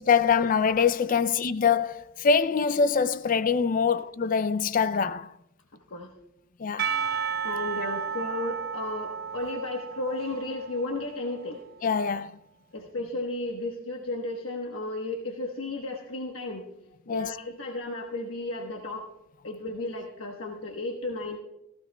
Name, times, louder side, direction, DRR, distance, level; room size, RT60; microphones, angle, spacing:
voice 1, 0.1-5.3 6.6-7.0 11.8-12.4 17.1-17.3, left 6 dB, 40° left, 0.4 m, -24 dB
voice 2, 5.7-6.1 7.4-11.6 12.7-16.6 17.1-19.1 19.4-21.4, left 2 dB, 75° left, 1.1 m, -34 dB
Percussion / Church bell, 6.8-11.6, right 7 dB, 45° right, 1.0 m, -33 dB
16.0 x 15.5 x 2.2 m
head